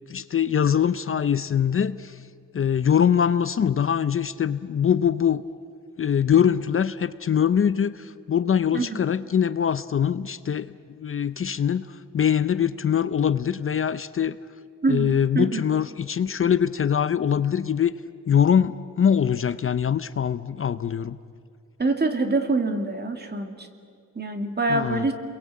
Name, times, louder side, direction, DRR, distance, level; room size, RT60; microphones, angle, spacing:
voice 1, 0.1-2.2 2.5-5.4 6.0-14.4 14.9-17.9 18.3-21.2 24.7-25.1, left 8 dB, 45° left, 14 dB, 0.6 m, -23 dB
voice 2, 14.8-15.7 21.8-23.7 24.2-25.1, right 3 dB, 30° right, 5 dB, 2.5 m, -25 dB
30.0 x 22.5 x 8.5 m, 2.3 s
wide cardioid pair, 135°, 31 cm